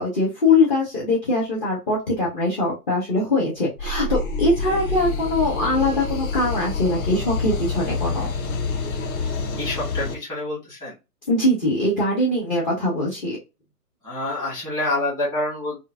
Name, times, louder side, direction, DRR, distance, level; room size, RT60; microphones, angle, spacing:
voice 1, 0.0-8.3 11.3-13.4, left 2 dB, 30° left, -6 dB, 1.0 m, -22 dB
sound 1, 3.8-10.1, left 4 dB, 60° left, 0.8 m, -27 dB
voice 2, 9.6-11.0 14.0-15.8, left 2 dB, 10° left, -8 dB, 1.3 m, -27 dB
3.0 x 2.5 x 2.4 m, 0.25 s
hypercardioid pair, 145°, 48 cm